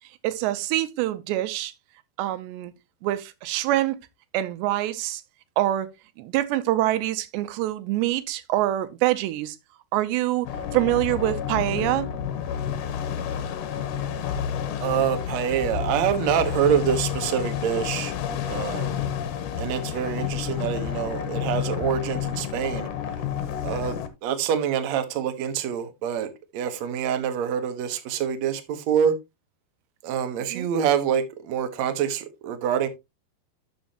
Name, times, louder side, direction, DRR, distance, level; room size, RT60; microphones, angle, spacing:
voice 1, 0.2-1.7 2.2-2.7 3.0-4.0 4.3-5.2 5.6-5.9 6.2-9.6 9.9-10.5 10.7-12.1 30.5-30.7, right 15 dB, 90° right, 3.0 m, -25 dB
sound 1, 10.4-24.1, left 9 dB, 70° left, 2.1 m, -30 dB
voice 2, 14.8-18.1 18.5-19.0 19.6-22.9 23.6-24.0 24.2-29.1 30.0-32.9, right 8 dB, 60° right, 1.9 m, -26 dB
12.5 x 6.2 x 2.9 m
omnidirectional pair, 4.9 m